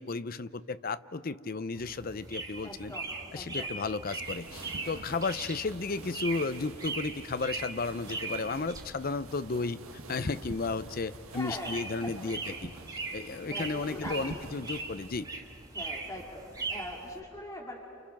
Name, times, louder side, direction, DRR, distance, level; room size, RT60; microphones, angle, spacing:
voice 1, 0.0-2.9 3.3-9.8 10.1-12.7 13.1-15.3, left 3 dB, 40° left, 14 dB, 0.6 m, -34 dB
sound 1, 1.7-17.2, right 3 dB, 15° right, 1.6 m, -41 dB
voice 2, 2.6-3.7 11.3-12.3 13.5-14.4 15.7-17.8, left 1 dB, 15° left, -2 dB, 2.3 m, -42 dB
sound 2, 4.1-15.3, right 2 dB, 70° right, 1.6 m, -47 dB
29.5 x 29.0 x 5.9 m, 2.4 s
head